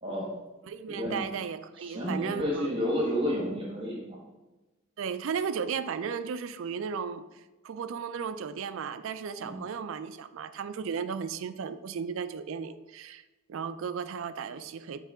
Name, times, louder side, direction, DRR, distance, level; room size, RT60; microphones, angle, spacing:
voice 1, 0.0-0.3 1.0-1.2 1.8-4.2 9.4-9.7, equal, 25° right, 1.2 m, -31 dB
voice 2, 0.6-2.7 5.0-13.2 13.5-15.0, right 6 dB, 70° right, 0.4 m, -35 dB
9.1 x 3.3 x 3.5 m
head